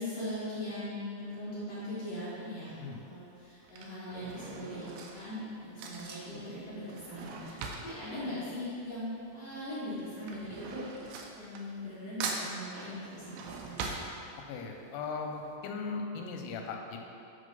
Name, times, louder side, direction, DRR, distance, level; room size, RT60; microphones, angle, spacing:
voice 1, 0.0-2.8 3.1-10.8 11.3-13.9, left 1 dB, 60° left, -11 dB, 1.8 m, -40 dB
Drawer open or close / Cutlery silverware, 2.2-2.6 3.4-9.3 9.6-12.0 12.2-14.7 15.2-15.3 15.5-15.6, right 4 dB, 85° right, 2.0 m, -42 dB
voice 2, 14.5-17.0, left 4 dB, 90° left, 2 dB, 2.8 m, -38 dB
8.4 x 3.5 x 5.3 m, 2.7 s
omnidirectional pair, 4.7 m